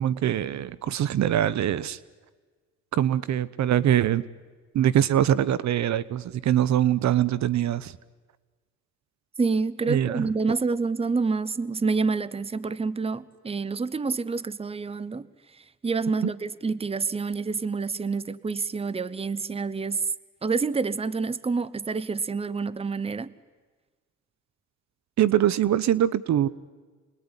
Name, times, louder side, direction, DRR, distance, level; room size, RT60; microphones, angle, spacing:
voice 1, 0.0-2.0 2.9-4.2 4.7-8.0 9.9-10.3 16.2-16.3 25.2-26.5, right 11 dB, 65° right, 19 dB, 0.9 m, -23 dB
voice 2, 9.4-15.3 15.8-20.0 20.4-23.3, right 4 dB, 20° right, 19 dB, 0.9 m, -28 dB
27.5 x 21.0 x 9.8 m, 1.4 s
cardioid pair, 90°, 30 cm